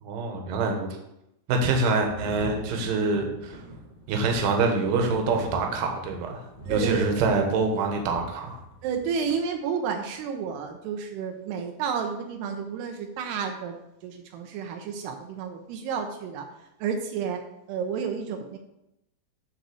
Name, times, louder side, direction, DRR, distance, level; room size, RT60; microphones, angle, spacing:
voice 1, 0.0-0.9 1.5-3.6 4.1-8.6, right 3 dB, 65° right, 3 dB, 2.7 m, -25 dB
Thunder, 2.0-9.3 10.5-10.6, equal, 5° left, 1.7 m, -40 dB
voice 2, 6.7-7.2 8.8-13.8 14.0-16.4 16.8-17.4 17.7-18.6, right 6 dB, 85° right, 4 dB, 2.8 m, -31 dB
10.0 x 4.1 x 6.9 m, 0.86 s
omnidirectional pair, 4.6 m